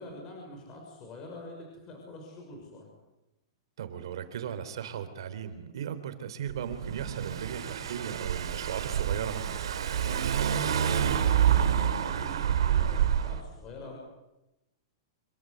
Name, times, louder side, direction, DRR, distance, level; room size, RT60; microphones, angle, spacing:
voice 1, 0.0-2.9 10.5-14.0, left 2 dB, 25° left, 1 dB, 6.3 m, -45 dB
voice 2, 3.8-9.6, right 8 dB, 70° right, 11 dB, 3.7 m, -37 dB
Car / Engine, 6.5-13.4, right 9 dB, 90° right, 2.9 m, -28 dB
27.5 x 24.0 x 8.1 m, 0.94 s
supercardioid pair, 160°, 3 cm